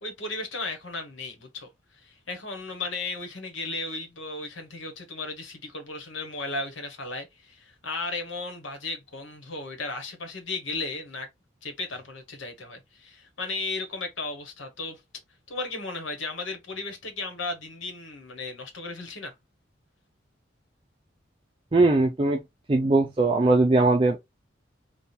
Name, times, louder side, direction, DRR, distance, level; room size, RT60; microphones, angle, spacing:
voice 1, 0.0-1.7 1.9-11.3 11.6-15.0 15.5-19.3, left 3 dB, 85° left, 1.3 m, -35 dB
voice 2, 21.7-22.4 22.7-24.2, right 2 dB, 25° right, 0.4 m, -20 dB
3.5 x 2.4 x 4.3 m
head